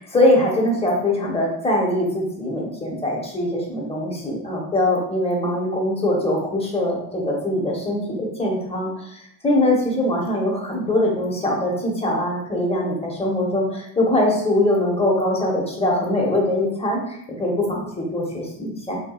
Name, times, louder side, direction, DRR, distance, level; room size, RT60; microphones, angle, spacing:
voice 1, 0.1-19.0, left 1 dB, 15° left, -2 dB, 1.0 m, -22 dB
4.3 x 2.3 x 2.4 m, 0.74 s
cardioid pair, 90°, 44 cm